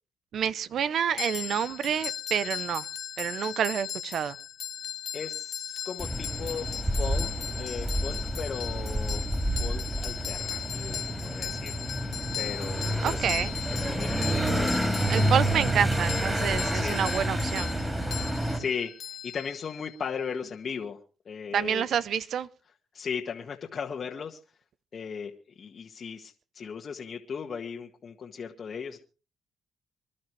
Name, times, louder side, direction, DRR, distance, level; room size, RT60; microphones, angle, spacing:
voice 1, 0.3-2.8 3.2-4.4 13.0-13.5 15.1-17.7 21.5-22.5, right 8 dB, 65° right, 0.7 m, -28 dB
sound 1, 1.2-20.0, left 9 dB, 70° left, 1.5 m, -37 dB
voice 2, 5.1-7.3 7.6-9.2 9.6-11.7 12.3-13.4 13.8-15.7 16.7-17.0 18.5-21.0 21.2-21.9 22.9-24.4 24.9-29.0, left 6 dB, 50° left, 1.6 m, -37 dB
sound 2, 6.0-18.6, right 1 dB, 10° right, 3.8 m, -29 dB
26.0 x 12.0 x 3.2 m
cardioid pair, 90°, 0 cm